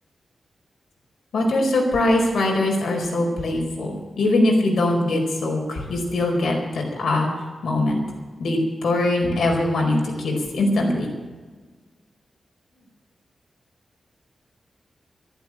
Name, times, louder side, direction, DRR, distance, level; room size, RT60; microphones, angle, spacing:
voice 1, 1.3-7.3 7.6-8.0 8.4-11.1, left 2 dB, 90° left, 1 dB, 4.7 m, -22 dB
13.0 x 11.5 x 8.9 m, 1.4 s
wide cardioid pair, 170°, 0 cm